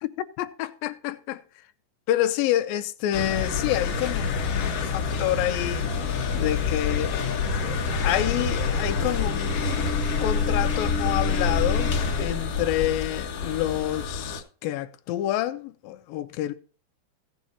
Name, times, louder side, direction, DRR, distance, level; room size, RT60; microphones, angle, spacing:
voice 1, 0.4-1.4 2.1-7.2 7.6-7.8 8.0-9.5 10.2-11.9 12.2-16.5, left 13 dB, 75° left, 2.3 m, -28 dB
sound 1, 3.1-14.4, left 5 dB, 55° left, 1.8 m, -26 dB
16.5 x 7.2 x 2.8 m
omnidirectional pair, 4.5 m